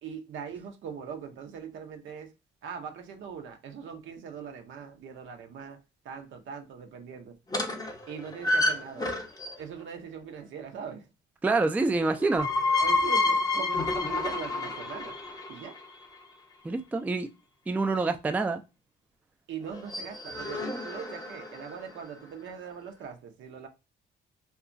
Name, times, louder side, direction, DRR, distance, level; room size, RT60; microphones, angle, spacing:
voice 1, 0.0-2.3 2.6-7.4 8.1-9.1 9.6-11.1 12.8-15.2 15.5-15.8 19.5-23.7, right 7 dB, 75° right, 0.7 m, -41 dB
sound 1, 7.5-9.8 12.0-16.0 19.7-21.9, left 2 dB, 20° left, 0.7 m, -29 dB
voice 2, 11.4-12.5 16.6-17.3 17.7-18.6, right 3 dB, 10° right, 0.3 m, -26 dB
2.9 x 2.3 x 2.5 m
cardioid pair, 90°, 20 cm